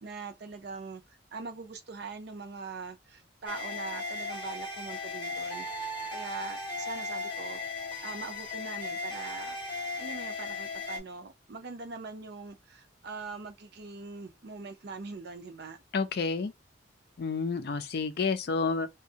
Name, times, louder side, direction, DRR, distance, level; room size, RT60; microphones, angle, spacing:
voice 1, 0.0-5.7 6.1-7.6 8.0-9.6 10.0-15.8, right 4 dB, 55° right, 0.5 m, -42 dB
sound 1, 3.5-11.0, left 2 dB, 25° left, 0.8 m, -37 dB
voice 2, 15.9-16.5 17.2-18.9, left 4 dB, 55° left, 0.4 m, -29 dB
2.5 x 2.2 x 2.7 m
head